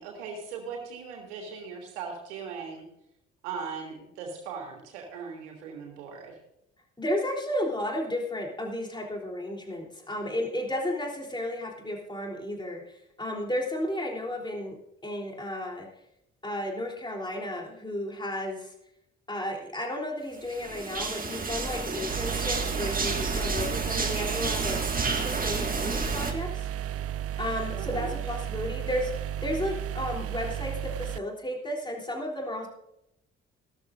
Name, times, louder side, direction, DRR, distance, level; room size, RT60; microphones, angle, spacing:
voice 1, 0.0-2.8 3.4-6.3 27.8-28.1, right 5 dB, 80° right, 1 dB, 2.9 m, -39 dB
voice 2, 7.0-14.8 15.0-15.9 16.4-18.7 19.3-24.8 25.2-26.7 27.4-32.7, left 1 dB, 15° left, 0 dB, 3.5 m, -33 dB
sound 1, 20.4-26.3, right 3 dB, 25° right, 2.0 m, -31 dB
sound 2, 22.1-31.2, right 11 dB, 45° right, 0.6 m, -33 dB
17.0 x 13.0 x 2.6 m, 0.83 s
hypercardioid pair, 45°, 34 cm